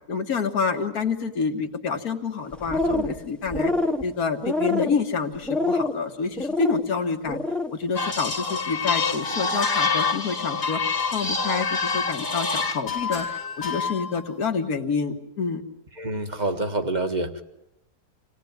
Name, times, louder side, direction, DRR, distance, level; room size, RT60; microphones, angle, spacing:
voice 1, 0.1-3.7 4.0-7.4 7.7-10.8 11.1-13.3 13.6-15.6, left 5 dB, 65° left, 5 dB, 2.2 m, -28 dB
sound 1, 2.5-3.2 3.5-4.0 4.4-5.0 5.5-6.0 6.4-6.8 7.2-7.7, left 2 dB, ahead, 1.2 m, -25 dB
sound 2, 8.0-14.3, left 4 dB, 40° left, 1.8 m, -27 dB
voice 2, 16.0-17.4, right 2 dB, 25° right, 6 dB, 1.8 m, -27 dB
27.0 x 18.5 x 9.5 m, 0.92 s
omnidirectional pair, 1.7 m